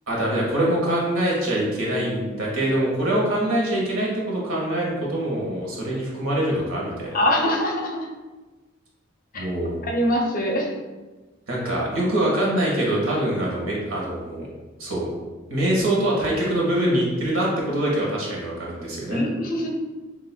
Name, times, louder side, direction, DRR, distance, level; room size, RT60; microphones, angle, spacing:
voice 1, 0.1-7.2 9.3-9.8 11.5-14.5 14.8-15.1 15.5-19.2, right 1 dB, 85° right, -4 dB, 1.4 m, -24 dB
voice 2, 7.1-8.1 9.3-9.5 9.8-10.7 19.1-19.7, equal, 45° left, 1 dB, 0.6 m, -23 dB
6.9 x 2.9 x 2.2 m, 1.2 s
head